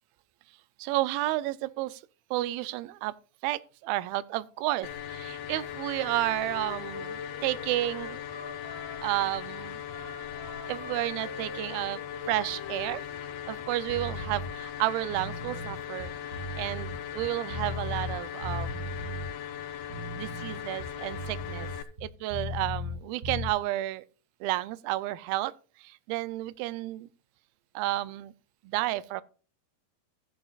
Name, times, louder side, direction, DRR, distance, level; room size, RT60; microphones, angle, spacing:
voice 1, 0.8-2.0 2.3-3.2 3.4-8.2 9.0-9.8 10.7-12.0 12.3-13.1 13.5-16.1 16.6-18.9 20.2-21.7 22.0-24.0 24.4-25.5 25.8-27.1 27.8-28.3 28.6-29.2, right 16 dB, 85° right, 2.1 m, -31 dB
sound 1, 4.8-21.8, left 9 dB, 75° left, 2.6 m, -39 dB
Wind instrument woodwind instrument, 6.0-9.2 9.8-13.4, left 3 dB, 5° left, 4.4 m, -45 dB
sound 2, 13.9-14.5 15.0-18.2 18.4-19.3 19.8-23.0 23.2-23.5, left 2 dB, 65° right, 0.7 m, -37 dB
14.0 x 10.5 x 2.4 m
omnidirectional pair, 4.8 m